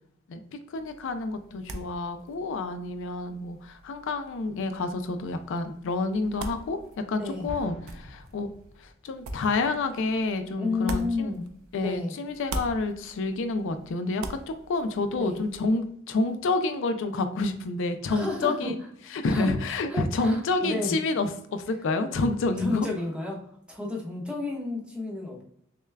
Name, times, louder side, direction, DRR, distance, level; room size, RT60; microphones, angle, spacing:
voice 1, 0.7-8.5 8.8-11.3 11.7-18.8 19.1-22.9, left 3 dB, 65° left, 8 dB, 0.4 m, -29 dB
sound 1, 0.8-12.0 12.2-15.7, right 2 dB, 85° right, 0.5 m, -42 dB
voice 2, 7.2-7.5 10.6-11.4 11.8-12.1 15.2-15.4 18.1-18.7 19.0-19.5 19.9-21.0 22.6-23.4 23.7-25.4, left 3 dB, 5° right, -2 dB, 0.8 m, -31 dB
Explosion, 7.5-9.3, left 1 dB, 85° left, 1.4 m, -45 dB
6.4 x 2.2 x 2.2 m, 0.70 s
head